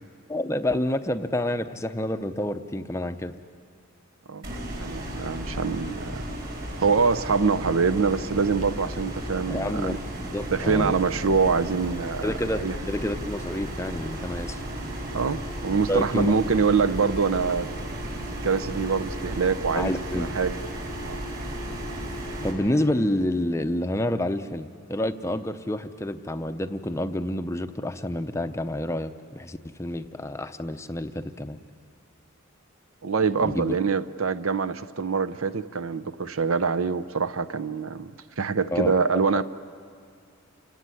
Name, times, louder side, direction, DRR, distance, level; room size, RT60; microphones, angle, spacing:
voice 1, 0.3-3.3 9.5-10.0 10.2-11.0 12.2-14.6 15.9-16.6 19.7-20.3 22.4-31.6 33.4-33.8 38.7-38.9, left 1 dB, 15° left, 9 dB, 0.6 m, -28 dB
sound 1, 4.4-22.5, right 1 dB, 45° right, 4.5 m, -34 dB
voice 2, 4.8-6.2 6.8-10.0 10.5-12.3 12.6-12.8 15.1-17.7 18.4-20.6 21.0-21.2 33.0-38.1 38.4-39.4, right 5 dB, 65° right, 14 dB, 0.7 m, -25 dB
28.0 x 17.5 x 9.7 m, 2.3 s
head